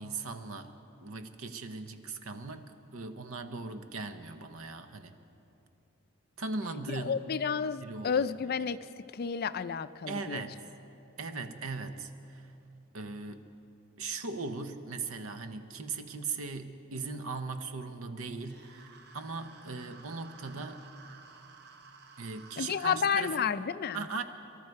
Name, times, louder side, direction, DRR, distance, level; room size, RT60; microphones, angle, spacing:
voice 1, 0.0-5.1 6.4-7.2 7.8-8.2 10.1-10.6 11.2-12.5 12.9-13.4 14.0-20.8 22.2-23.6 23.9-24.2, right 4 dB, 75° right, 9 dB, 0.9 m, -39 dB
voice 2, 6.9-8.8 9.1-10.4 22.6-24.1, left 7 dB, 50° left, 13 dB, 0.4 m, -31 dB
sound 1, 18.4-23.0, right 4 dB, 50° right, 0.9 m, -54 dB
24.0 x 12.5 x 4.7 m, 2.8 s
head